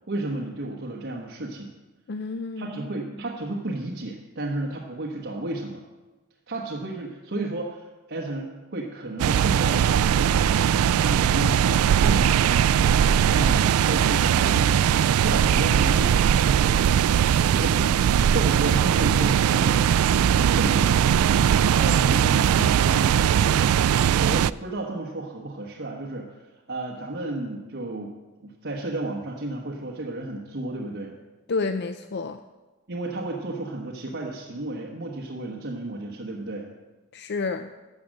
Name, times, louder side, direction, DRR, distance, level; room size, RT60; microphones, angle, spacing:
voice 1, 0.1-1.7 2.6-5.8 6.5-12.9 13.2-16.9 17.5-19.9 20.1-21.0 21.7-23.7 24.2-28.1 28.4-31.1 32.9-36.7, right 2 dB, 50° right, -2 dB, 1.2 m, -32 dB
voice 2, 2.1-2.8 31.5-32.4 37.1-37.7, left 4 dB, 50° left, 9 dB, 0.5 m, -29 dB
sound 1, 9.2-24.5, right 9 dB, 80° right, 0.3 m, -20 dB
13.5 x 7.5 x 6.6 m, 1.2 s
head